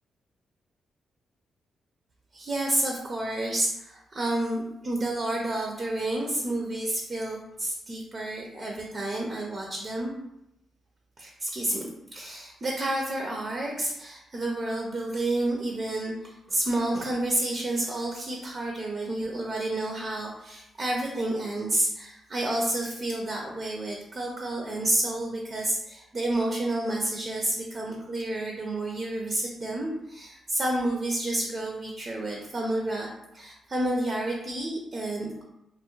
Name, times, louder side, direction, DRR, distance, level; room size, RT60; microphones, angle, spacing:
voice 1, 2.3-10.1 11.2-33.1 33.3-35.4, right 1 dB, 45° right, -1 dB, 0.5 m, -30 dB
2.3 x 2.0 x 3.0 m, 0.86 s
supercardioid pair, 60°, 0 cm